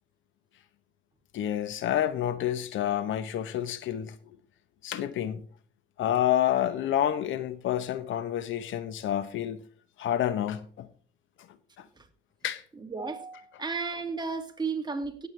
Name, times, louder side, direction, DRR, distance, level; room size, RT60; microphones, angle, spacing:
voice 1, 1.3-4.2 4.8-5.4 6.0-9.6 10.0-10.9 11.8-11.9 12.4-12.6, left 11 dB, 75° left, 0.9 m, -28 dB
voice 2, 12.8-15.3, right 4 dB, 20° right, 2.2 m, -34 dB
17.5 x 8.1 x 3.3 m
cardioid pair, 90°, 20 cm